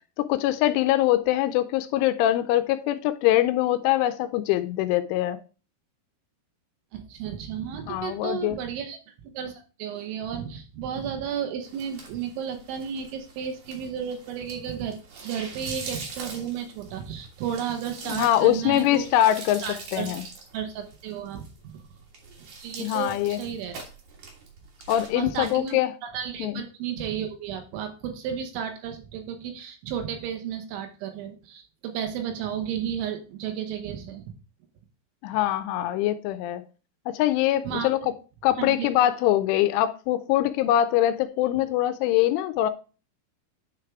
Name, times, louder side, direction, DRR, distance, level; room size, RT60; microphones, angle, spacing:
voice 1, 0.2-5.4 7.9-8.6 18.1-19.6 19.9-20.2 22.8-23.4 24.9-25.9 26.4-26.6 35.2-36.6 37.1-38.1 38.4-42.7, left 13 dB, 85° left, 2.9 m, -23 dB
voice 2, 6.9-9.0 9.2-9.5 9.8-19.1 19.6-20.1 20.5-21.8 22.4-23.8 25.1-34.4 37.6-37.9 38.6-38.9, right 8 dB, 75° right, 3.2 m, -33 dB
sound 1, 11.6-25.7, right 4 dB, 60° right, 2.1 m, -43 dB
9.8 x 3.6 x 4.6 m
omnidirectional pair, 5.7 m